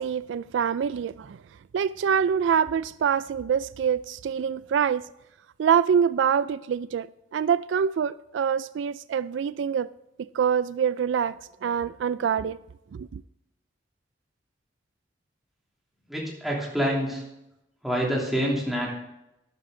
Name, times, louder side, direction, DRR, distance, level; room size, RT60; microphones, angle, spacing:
voice 1, 0.0-1.4 1.7-5.0 5.6-7.1 7.3-9.9 10.3-12.6 12.9-13.2, right 7 dB, 80° right, 0.3 m, -25 dB
voice 2, 16.1-17.2 17.8-18.9, equal, ahead, 2.9 m, -27 dB
12.0 x 10.5 x 3.8 m
head